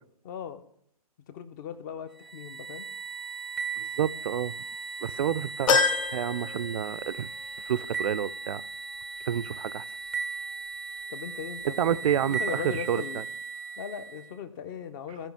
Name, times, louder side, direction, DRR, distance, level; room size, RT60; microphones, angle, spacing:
voice 1, 0.2-0.6 1.3-2.9 11.1-12.0 12.3-13.2 13.8-15.3, left 8 dB, 30° left, 0.7 m, -38 dB
sound 1, 2.2-14.3, right 5 dB, 5° right, 0.5 m, -37 dB
voice 2, 3.8-4.5 5.0-5.8 6.1-7.3 7.6-8.6 9.3-9.9 11.8-12.6 12.9-13.2, right 9 dB, 60° right, 0.4 m, -29 dB
sound 2, 5.7-7.3 7.7-7.8 9.0-9.1, left 5 dB, 60° left, 1.0 m, -27 dB
15.0 x 5.0 x 3.5 m
hypercardioid pair, 140°, 20 cm